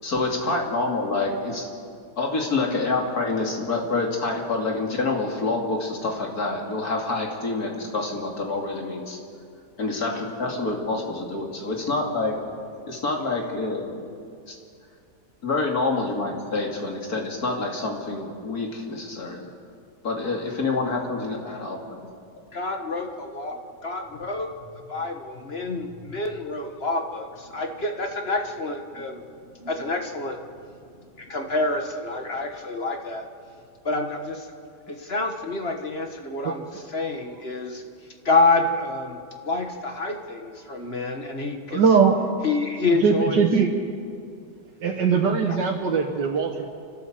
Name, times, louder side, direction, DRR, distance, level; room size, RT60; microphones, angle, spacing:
voice 1, 0.0-1.7 2.2-9.2 9.8-12.3 12.9-14.0 14.5-14.6 15.4-19.5 20.0-21.8, left 3 dB, 60° left, 1 dB, 3.0 m, -27 dB
voice 2, 22.5-24.5 24.9-29.2 29.6-30.4 31.2-33.3 33.8-34.5 34.9-37.8 38.2-39.2 39.4-41.8 42.4-43.5 45.4-45.6, left 3 dB, 40° left, 4 dB, 1.5 m, -27 dB
voice 3, 41.7-42.2 42.9-43.7 44.8-46.7, right 6 dB, 85° right, 0 dB, 2.0 m, -21 dB
29.5 x 12.5 x 7.6 m, 2.4 s
omnidirectional pair, 1.8 m